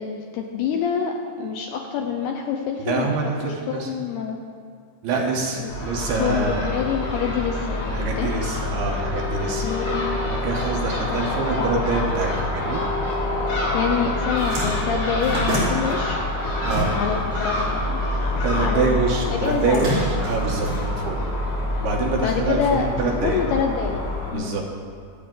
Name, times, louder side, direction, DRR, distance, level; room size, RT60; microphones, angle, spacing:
voice 1, 0.0-3.1 3.7-4.4 5.6-5.7 6.2-8.4 9.6-10.2 11.1-11.3 11.6-11.8 13.7-16.2 16.9-19.0 19.3-19.9 22.2-24.0 24.3-24.6, left 6 dB, 80° left, 2 dB, 2.4 m, -26 dB
voice 2, 2.8-3.9 5.0-6.7 7.9-9.7 10.3-12.8 16.6-17.0 18.4-21.2 21.8-23.4 24.3-24.6, right 4 dB, 70° right, 0 dB, 2.6 m, -25 dB
Crow / Gull seagull, 5.7-24.3, left 2 dB, 45° left, 4.2 m, -26 dB
sound 1, 13.8-13.9 14.2-17.3 17.6-18.8 19.4-21.4, right 1 dB, 45° right, 5.1 m, -29 dB
25.0 x 8.6 x 3.8 m, 2.2 s
omnidirectional pair, 5.3 m